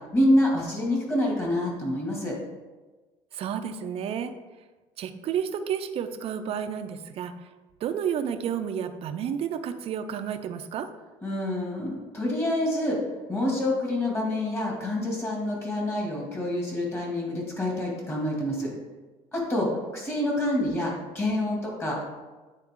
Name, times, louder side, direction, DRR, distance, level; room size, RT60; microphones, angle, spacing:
voice 1, 0.1-2.4 11.2-13.0 13.3-18.7 19.3-22.0, left 1 dB, 20° left, -2 dB, 2.3 m, -27 dB
voice 2, 3.3-4.3 5.0-7.3 7.8-10.9, right 8 dB, 55° right, 8 dB, 0.6 m, -31 dB
9.2 x 4.1 x 3.7 m, 1.2 s
cardioid pair, 120°, 12 cm